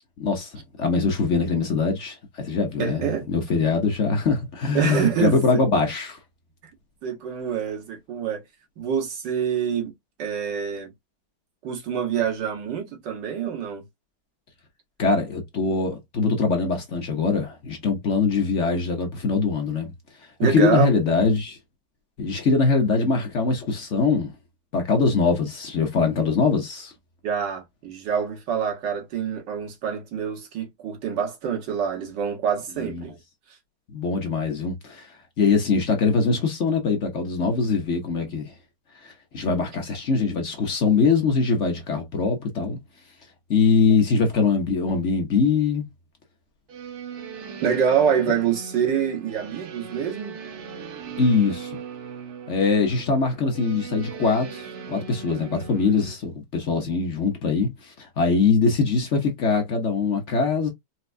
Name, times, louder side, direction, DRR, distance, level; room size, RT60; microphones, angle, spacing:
voice 1, 0.2-6.2 15.0-19.9 20.4-21.6 22.2-24.3 24.7-26.9 32.8-33.1 33.9-35.1 35.4-38.5 39.0-42.8 43.5-45.9 51.2-51.7 52.5-60.7, left 4 dB, 50° left, 1.0 m, -22 dB
voice 2, 2.8-3.3 4.8-5.6 7.0-8.4 8.8-9.9 10.2-10.9 11.6-13.8 20.4-21.0 27.2-33.2 47.6-50.4, right 8 dB, 90° right, 1.9 m, -26 dB
sound 1, 46.7-56.2, right 6 dB, 65° right, 1.2 m, -39 dB
4.3 x 2.3 x 2.4 m
omnidirectional pair, 1.8 m